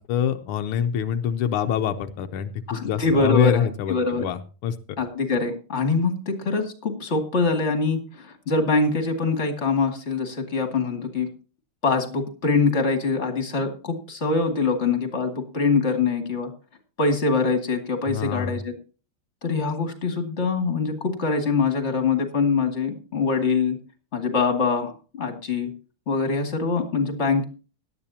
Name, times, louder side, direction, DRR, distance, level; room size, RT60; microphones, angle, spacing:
voice 1, 0.0-4.7 18.1-18.6, left 8 dB, 85° left, 7 dB, 1.7 m, -25 dB
voice 2, 2.7-4.3 5.0-11.3 11.8-16.5 17.0-18.7 19.4-23.8 24.1-25.7 26.1-27.4, left 4 dB, 30° left, 5 dB, 2.5 m, -24 dB
17.5 x 12.0 x 2.8 m, 0.35 s
omnidirectional pair, 2.4 m